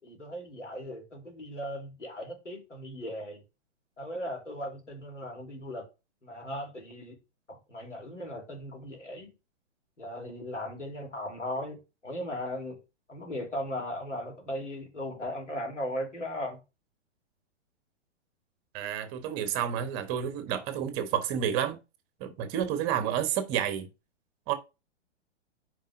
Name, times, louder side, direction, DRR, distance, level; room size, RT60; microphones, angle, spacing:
voice 1, 0.0-3.4 4.0-5.9 6.2-7.1 7.5-9.3 10.0-11.8 12.0-12.8 13.1-16.6, left 1 dB, 75° left, 3.4 m, -37 dB
voice 2, 18.7-21.8 22.2-23.9 24.5-24.6, right 9 dB, 25° right, 1.1 m, -30 dB
9.3 x 5.0 x 2.6 m
figure-of-eight pair, 115°, 36 cm